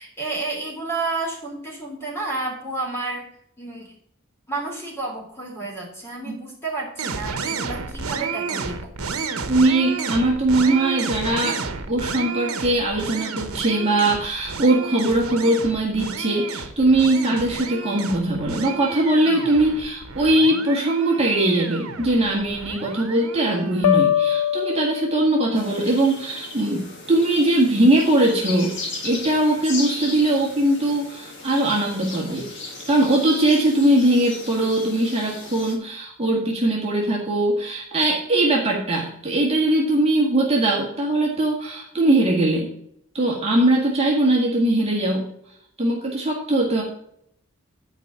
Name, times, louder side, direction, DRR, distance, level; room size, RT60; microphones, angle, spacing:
voice 1, 0.0-3.3 3.6-3.9 4.5-8.9, right 3 dB, 10° left, -1 dB, 3.2 m, -30 dB
sound 1, 7.0-23.9, right 5 dB, 80° right, 1.1 m, -31 dB
voice 2, 9.5-11.6 11.9-28.7 29.0-32.4 32.8-42.7 43.1-45.2 45.8-46.8, right 1 dB, 30° right, -3 dB, 1.8 m, -20 dB
sound 2, 23.8-25.7, left 10 dB, 90° left, 0.5 m, -22 dB
sound 3, 25.5-35.7, left 3 dB, 55° left, 2.3 m, -36 dB
10.0 x 5.0 x 5.9 m, 0.70 s
head